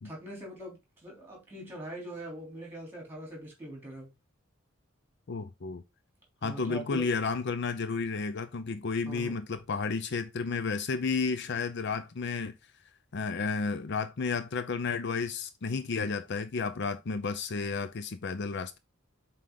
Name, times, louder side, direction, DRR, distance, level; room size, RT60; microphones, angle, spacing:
voice 1, 0.0-4.1 6.4-7.1 9.0-9.4, right 1 dB, 10° right, 3.2 m, -42 dB
voice 2, 5.3-5.8 6.4-12.5 13.1-18.8, left 4 dB, 60° left, 0.5 m, -32 dB
7.7 x 3.9 x 3.8 m
head